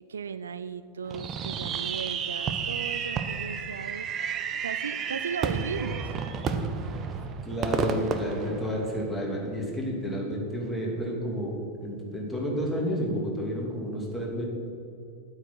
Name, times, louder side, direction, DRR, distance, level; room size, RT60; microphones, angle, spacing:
voice 1, 0.1-4.3 4.6-6.1, right 6 dB, 70° right, 13 dB, 0.4 m, -36 dB
Fireworks, 1.1-9.2, right 6 dB, 30° right, 0.8 m, -31 dB
voice 2, 7.4-11.5 11.8-14.4, equal, ahead, -4 dB, 2.7 m, -31 dB
9.0 x 8.7 x 6.1 m, 2.5 s
figure-of-eight pair, 90°, 0 cm